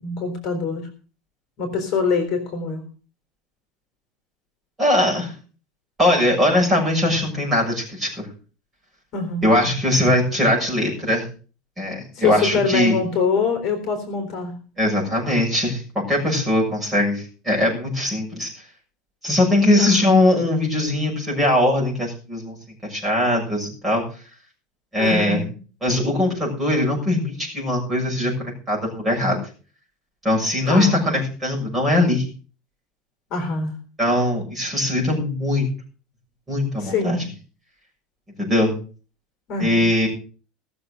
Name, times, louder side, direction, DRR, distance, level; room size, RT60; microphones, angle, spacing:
voice 1, 0.0-0.9 1.6-2.8 9.1-9.5 12.1-14.6 19.8-20.1 25.0-25.6 30.7-31.0 33.3-33.8 36.8-37.2 39.5-39.9, left 4 dB, 40° left, 6 dB, 3.7 m, -24 dB
voice 2, 4.8-5.3 6.0-8.3 9.4-11.3 11.8-13.0 14.8-15.8 16.1-18.5 19.2-22.6 22.8-24.0 24.9-25.4 25.8-29.4 30.2-32.2 34.0-35.7 36.5-37.2 38.4-38.7 39.6-40.1, left 1 dB, 10° right, -3 dB, 6.6 m, -20 dB
19.0 x 7.0 x 6.5 m, 0.38 s
cardioid pair, 170°, 0 cm